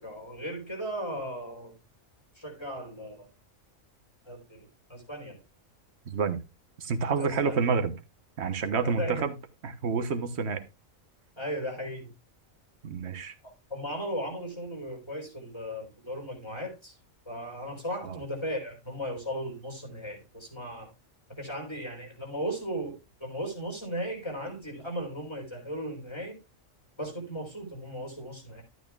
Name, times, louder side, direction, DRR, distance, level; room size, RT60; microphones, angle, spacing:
voice 1, 0.0-1.7 2.3-3.3 4.2-5.4 7.2-7.5 8.8-9.3 11.4-12.1 13.4-17.0 17.3-20.9 21.4-22.9 23.2-26.4 27.0-28.6, equal, 20° left, 0 dB, 4.1 m, -36 dB
voice 2, 6.0-6.4 6.8-7.9 8.4-9.3 9.6-10.6 12.8-13.3 18.0-18.2, right 5 dB, 55° right, 8 dB, 1.4 m, -28 dB
12.5 x 9.2 x 2.3 m, 0.26 s
omnidirectional pair, 1.4 m